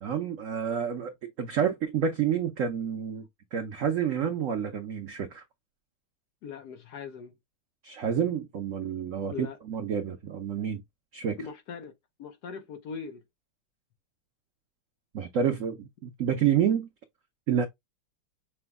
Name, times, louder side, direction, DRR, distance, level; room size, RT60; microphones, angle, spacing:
voice 1, 0.0-3.2 3.5-5.4 7.8-10.8 11.1-11.4 15.1-16.9 17.5-17.7, right 8 dB, 80° right, 0.7 m, -29 dB
voice 2, 6.4-7.4 9.3-9.6 11.4-11.9 12.2-13.2, left 6 dB, 65° left, 1.1 m, -40 dB
6.0 x 2.1 x 3.5 m
omnidirectional pair, 2.2 m